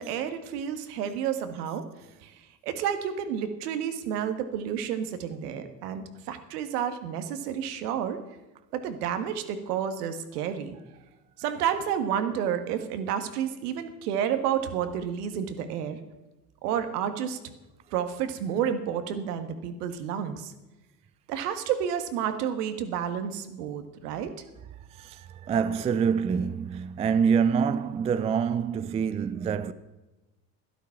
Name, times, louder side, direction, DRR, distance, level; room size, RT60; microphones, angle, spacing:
voice 1, 0.0-1.8 2.2-8.2 8.7-10.8 11.4-16.0 16.6-17.4 17.9-20.5 21.3-24.3, right 8 dB, 70° right, 1.7 m, -30 dB
voice 2, 25.0-29.7, right 6 dB, 15° right, 0.3 m, -26 dB
12.0 x 12.0 x 5.8 m
hypercardioid pair, 75°, 49 cm